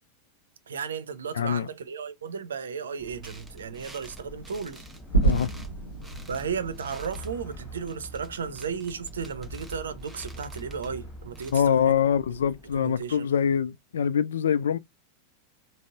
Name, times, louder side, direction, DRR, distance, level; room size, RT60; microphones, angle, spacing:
voice 1, 0.7-4.9 6.3-12.0 12.3-13.3, right 6 dB, 65° right, 0.6 m, -35 dB
voice 2, 1.3-1.7 5.2-5.5 11.5-14.8, left 8 dB, 65° left, 0.3 m, -24 dB
sound 1, 3.0-13.2, equal, 5° right, 0.7 m, -48 dB
sound 2, 4.1-11.7, equal, 30° left, 1.6 m, -46 dB
sound 3, 4.3-8.6, right 3 dB, 85° left, 0.8 m, -30 dB
5.2 x 2.0 x 2.4 m
figure-of-eight pair, 90°, 0 cm